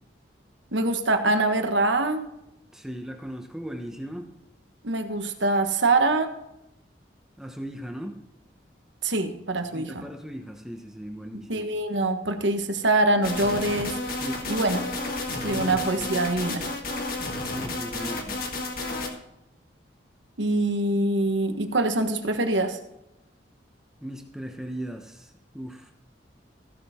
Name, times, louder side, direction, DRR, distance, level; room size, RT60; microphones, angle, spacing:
voice 1, 0.7-2.2 4.8-6.3 9.0-10.1 11.5-14.9 15.4-16.7 20.4-22.8, right 2 dB, 85° right, 6 dB, 1.5 m, -24 dB
voice 2, 2.7-4.3 7.4-8.2 9.7-11.7 14.1-14.4 15.4-16.1 17.2-18.4 24.0-25.9, equal, 5° right, 3 dB, 1.0 m, -37 dB
sound 1, 13.2-19.1, left 2 dB, 50° left, 1.9 m, -31 dB
15.5 x 6.8 x 4.4 m, 0.87 s
head